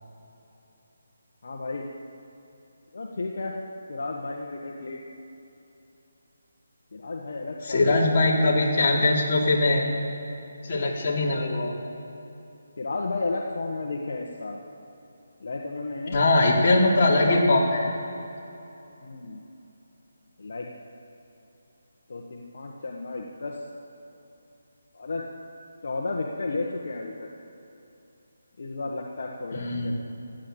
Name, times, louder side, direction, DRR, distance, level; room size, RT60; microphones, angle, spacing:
voice 1, 1.4-1.9 2.9-3.6 3.9-5.0 6.9-8.0 8.2-8.4 12.8-14.6 15.4-16.2 17.2-17.5 19.0-19.4 20.4-20.7 22.1-23.6 24.9-25.3 25.8-27.3 28.6-29.9, left 3 dB, 60° left, 0 dB, 1.5 m, -33 dB
voice 2, 7.7-9.9 10.6-11.7 16.1-17.8 29.5-29.9, left 2 dB, 40° left, -4 dB, 3.4 m, -21 dB
15.0 x 10.5 x 8.1 m, 2.9 s
figure-of-eight pair, 165°, 0 cm